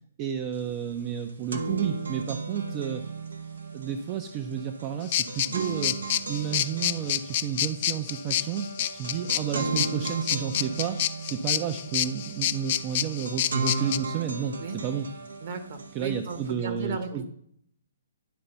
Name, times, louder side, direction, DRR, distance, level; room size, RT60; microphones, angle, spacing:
voice 1, 0.2-3.0 3.7-6.0 6.3-15.1 15.9-17.3, right 8 dB, 30° right, 8 dB, 0.5 m, -31 dB
sound 1, 0.6-0.7 1.0-16.5, right 4 dB, 75° right, 0.8 m, -35 dB
sound 2, 5.1-14.0, left 12 dB, 40° left, 0.4 m, -28 dB
voice 2, 15.4-17.3, right 4 dB, 50° right, 7 dB, 1.3 m, -35 dB
10.5 x 3.9 x 5.5 m, 0.67 s
hypercardioid pair, 135°, 0 cm